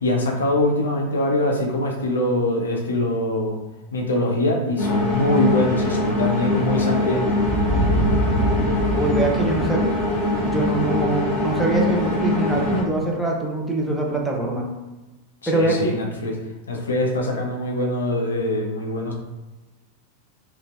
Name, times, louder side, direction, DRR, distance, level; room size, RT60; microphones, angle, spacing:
voice 1, 0.0-3.6 3.9-7.5 15.4-16.3 16.7-19.1, left 1 dB, 70° left, 0 dB, 0.5 m, -23 dB
sound 1, 4.8-12.8, left 2 dB, 55° right, 1.2 m, -22 dB
sound 2, 7.4-12.0, right 1 dB, 25° right, 1.2 m, -26 dB
voice 2, 8.9-9.8 10.4-14.6 15.5-15.9, right 2 dB, ahead, -1 dB, 0.5 m, -23 dB
2.9 x 2.5 x 2.4 m, 1.1 s
figure-of-eight pair, 90°, 0 cm